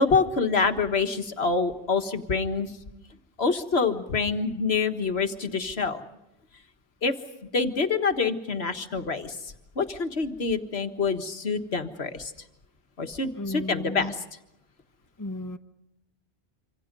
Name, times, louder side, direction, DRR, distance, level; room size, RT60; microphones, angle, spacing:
voice 1, 0.0-2.7 3.4-6.0 7.0-7.1 7.5-12.3 13.0-14.2, left 4 dB, 70° left, 7 dB, 1.8 m, -26 dB
voice 2, 13.3-14.1 15.2-15.6, left 2 dB, 20° left, 8 dB, 0.9 m, -33 dB
26.5 x 26.0 x 5.3 m, 0.89 s
omnidirectional pair, 1.1 m